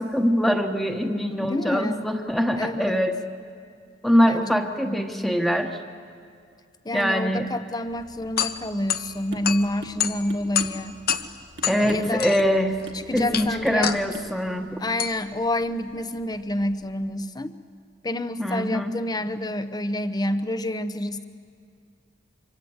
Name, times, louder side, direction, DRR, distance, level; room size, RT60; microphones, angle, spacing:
voice 1, 0.0-3.2 4.0-5.8 6.9-7.5 11.7-12.8 13.1-14.8 18.4-18.9, equal, ahead, 4 dB, 1.3 m, -23 dB
voice 2, 1.4-2.0 2.6-3.0 4.3-4.5 4.8-5.4 6.8-11.0 11.8-12.3 13.1-14.0 14.8-17.5 18.0-21.2, left 1 dB, 20° left, 11 dB, 0.9 m, -28 dB
sound 1, 7.9-17.0, left 9 dB, 55° left, 0.9 m, -31 dB
sound 2, 9.3-9.5 9.8-10.0 10.3-11.3 11.6-12.1 12.4-12.6 12.9-13.4 13.7-13.9 14.1-14.3, right 2 dB, 70° right, 1.8 m, -41 dB
25.5 x 25.0 x 8.1 m, 2.3 s
head